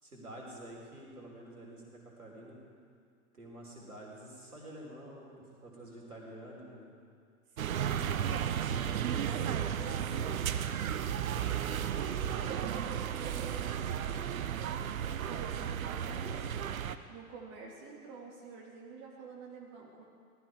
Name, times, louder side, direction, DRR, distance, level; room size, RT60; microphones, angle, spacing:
voice 1, 0.0-2.6 3.3-6.9, right 1 dB, 85° right, -2 dB, 3.9 m, -49 dB
voice 2, 7.6-10.4 11.4-14.4 15.2-16.4 17.1-20.0, right 4 dB, 40° right, -3 dB, 3.0 m, -48 dB
sound 1, 7.6-17.0, right 9 dB, 65° right, 0.8 m, -34 dB
19.0 x 13.0 x 4.8 m, 2.2 s
figure-of-eight pair, 100°, 44 cm